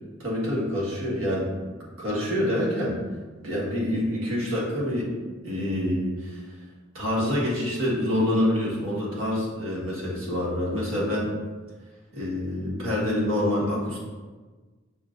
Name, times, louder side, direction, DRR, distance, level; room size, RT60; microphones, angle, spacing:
voice 1, 0.2-1.6 2.0-3.0 3.4-5.1 5.4-6.4 6.9-11.3 12.1-14.0, left 1 dB, 90° right, -5 dB, 1.4 m, -26 dB
6.2 x 3.1 x 2.5 m, 1.3 s
head